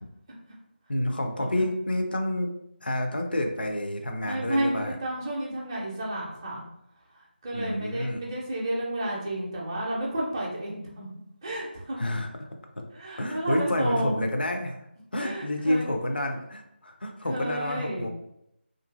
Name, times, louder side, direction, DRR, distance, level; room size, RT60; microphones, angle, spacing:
voice 1, 0.9-2.5 2.8-5.0 7.5-8.2 12.0-12.5 12.8-12.9 13.2-14.8 15.1-18.1, left 1 dB, 60° left, 3 dB, 0.5 m, -29 dB
voice 2, 4.3-6.6 7.4-11.1 11.4-12.0 12.9-14.3 15.2-15.9 17.3-18.1, right 1 dB, 20° right, -5 dB, 0.6 m, -31 dB
2.7 x 2.5 x 2.4 m, 0.79 s
figure-of-eight pair, 160°, 6 cm